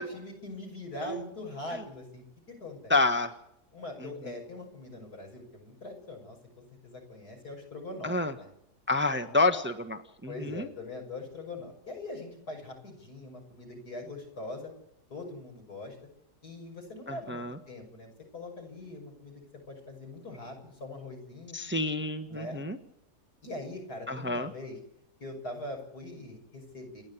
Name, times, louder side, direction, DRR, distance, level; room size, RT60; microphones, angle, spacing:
voice 1, 0.0-3.0 3.7-6.4 6.8-8.5 10.3-14.7 15.1-16.0 16.4-19.4 19.7-21.6 22.3-22.6 23.4-24.8 25.2-27.0, left 2 dB, 80° left, 1 dB, 7.0 m, -42 dB
voice 2, 2.9-3.3 4.0-4.1 8.0-8.3 8.9-10.7 17.1-17.6 21.5-22.8 24.1-24.5, left 2 dB, 10° right, 7 dB, 1.2 m, -29 dB
28.5 x 11.0 x 9.7 m, 0.78 s
omnidirectional pair, 1.7 m